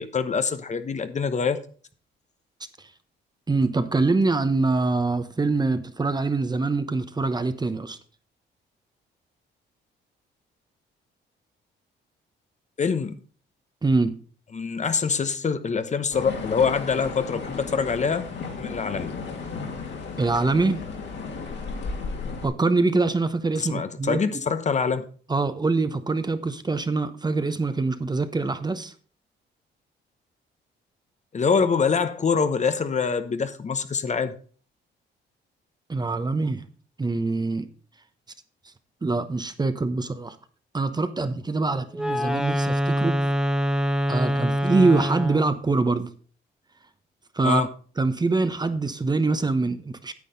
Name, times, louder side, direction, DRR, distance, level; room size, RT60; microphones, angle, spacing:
voice 1, 0.0-1.6 12.8-13.2 14.5-18.2 18.6-19.1 23.6-25.0 31.3-34.4 47.4-47.7, left 5 dB, 35° left, 11 dB, 0.9 m, -25 dB
voice 2, 3.5-8.0 13.8-14.1 20.2-20.8 22.4-24.2 25.3-28.9 35.9-36.6 37.0-37.7 39.0-40.4 40.7-43.2 44.1-46.1 47.3-47.7 48.0-50.1, right 3 dB, 20° right, 11 dB, 0.9 m, -24 dB
sound 1, 16.1-22.5, left 4 dB, 65° left, 2.6 m, -34 dB
Wind instrument woodwind instrument, 41.9-45.6, equal, 5° right, 1.3 m, -25 dB
9.5 x 8.4 x 4.0 m, 0.42 s
cardioid pair, 90°, 20 cm